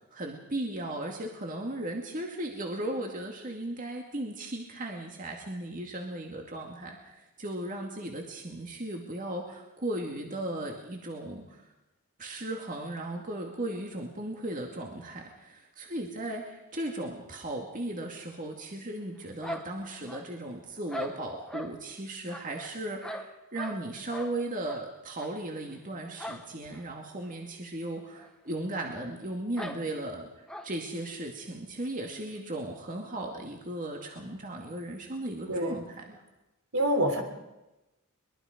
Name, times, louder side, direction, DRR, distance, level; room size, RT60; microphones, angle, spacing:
voice 1, 0.0-11.7 12.2-36.2, right 1 dB, 35° right, 1 dB, 2.3 m, -36 dB
sound 1, 19.4-20.5 20.9-21.7 22.3-23.8 24.1-24.3 24.6-24.8 25.2-25.3 26.2-26.5 26.7-26.8 27.2-27.3 28.2-28.3 28.5-28.6 29.6-29.8 30.5-30.7, equal, 5° left, 1.6 m, -40 dB
voice 2, 35.5-35.8 36.7-37.2, equal, 70° right, 4 dB, 3.7 m, -26 dB
23.0 x 22.5 x 5.2 m, 1.0 s
head